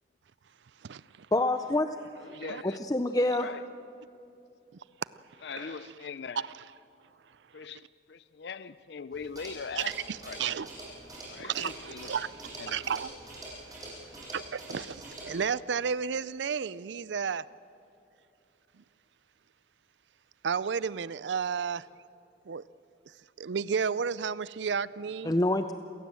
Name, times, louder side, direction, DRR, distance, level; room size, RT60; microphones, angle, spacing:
voice 1, 1.3-2.4 2.6-3.5 25.2-25.7, left 1 dB, 20° left, 8 dB, 0.5 m, -27 dB
voice 2, 2.2-2.8 3.4-3.6 5.4-6.5 7.5-10.0 10.2-10.4 11.3-12.1 12.5-12.9, left 5 dB, 70° left, 15 dB, 0.5 m, -41 dB
sound 1, 9.1-15.4, right 1 dB, 20° right, 7.7 m, -45 dB
voice 3, 9.8-10.7 11.4-12.3 12.7-13.1 14.3-17.4 20.4-21.8 22.5-22.6 23.4-25.3, right 6 dB, 75° right, 18 dB, 0.5 m, -32 dB
28.0 x 17.0 x 7.7 m, 2.7 s
head